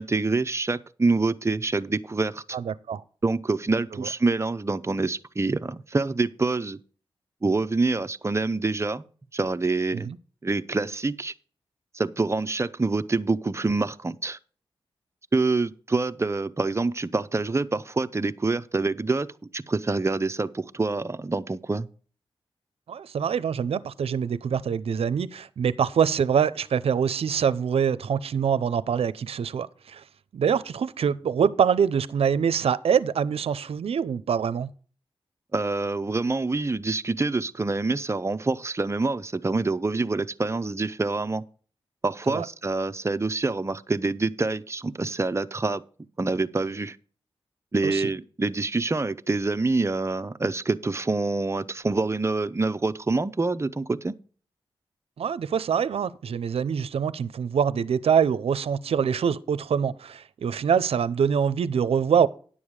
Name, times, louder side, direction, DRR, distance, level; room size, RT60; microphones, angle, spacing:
voice 1, 0.0-2.6 3.2-6.8 7.4-9.0 9.3-10.1 10.4-11.3 11.9-14.4 15.3-19.3 19.5-21.9 35.5-41.4 42.0-45.8 46.2-47.0 47.7-54.1, right 3 dB, 30° right, 0.7 m, -26 dB
voice 2, 2.5-3.0 3.9-4.1 9.9-10.2 22.9-30.0 30.3-34.7 42.3-42.5 47.8-48.0 55.2-62.3, right 7 dB, 80° right, 0.6 m, -24 dB
10.5 x 7.1 x 4.8 m
cardioid pair, 60°, 10 cm